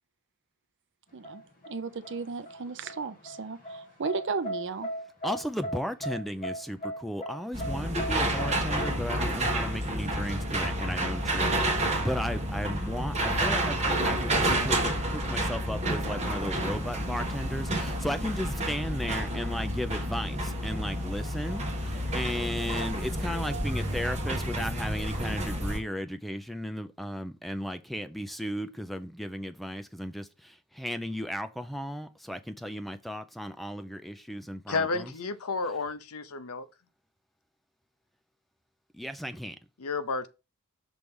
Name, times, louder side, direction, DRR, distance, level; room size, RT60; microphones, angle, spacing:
voice 1, 1.1-4.9, right 4 dB, 55° right, 0.6 m, -35 dB
sound 1, 1.2-8.9, right 1 dB, 40° left, 1.6 m, -38 dB
voice 2, 5.2-35.1 38.9-39.6, equal, ahead, 0.4 m, -35 dB
sound 2, 7.5-25.8, right 1 dB, 30° right, 1.5 m, -30 dB
voice 3, 34.7-36.7 39.8-40.3, left 4 dB, 70° left, 0.7 m, -31 dB
6.2 x 3.3 x 5.3 m
head